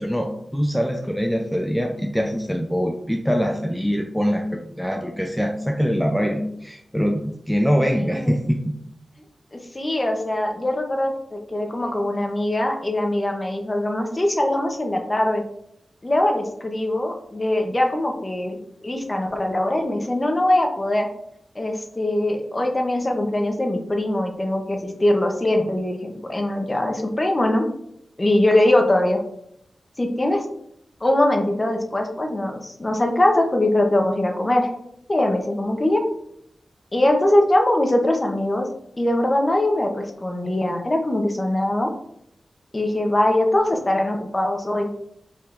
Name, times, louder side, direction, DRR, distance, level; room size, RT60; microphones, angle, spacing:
voice 1, 0.0-8.8, equal, ahead, 2 dB, 0.4 m, -23 dB
voice 2, 7.8-8.3 9.5-15.4 16.0-18.6 18.8-21.1 21.6-27.7 28.2-29.2 30.0-30.4 31.0-34.7 35.1-36.0 36.9-38.7 39.0-41.9 42.7-44.9, left 1 dB, 25° left, 3 dB, 0.7 m, -22 dB
4.6 x 3.6 x 2.5 m, 0.74 s
wide cardioid pair, 90°, 0 cm